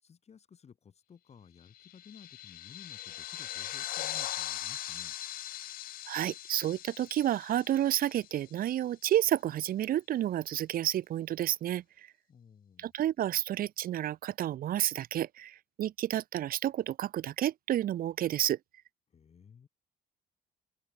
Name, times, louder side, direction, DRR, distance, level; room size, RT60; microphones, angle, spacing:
voice 1, 0.0-5.2 12.3-12.9 19.1-19.7, left 7 dB, 40° left, 6.1 m, -56 dB
sound 1, 1.8-8.6, left 13 dB, 60° left, 0.7 m, -40 dB
voice 2, 6.1-11.8 12.8-18.6, right 12 dB, 60° right, 1.3 m, -30 dB
cardioid pair, 110°, 17 cm